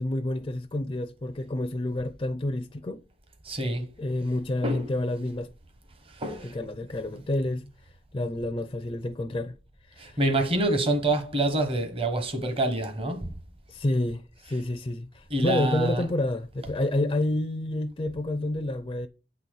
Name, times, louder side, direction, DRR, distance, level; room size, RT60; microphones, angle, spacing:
voice 1, 0.0-3.0 4.0-5.5 6.4-7.7 8.1-9.6 9.9-10.2 13.7-19.1, left 1 dB, 25° left, 0.4 m, -29 dB
voice 2, 3.4-3.8 4.6-4.9 6.1-6.6 10.0-13.3 15.3-16.0, right 2 dB, 30° right, 1.1 m, -26 dB
8.4 x 4.2 x 6.3 m
head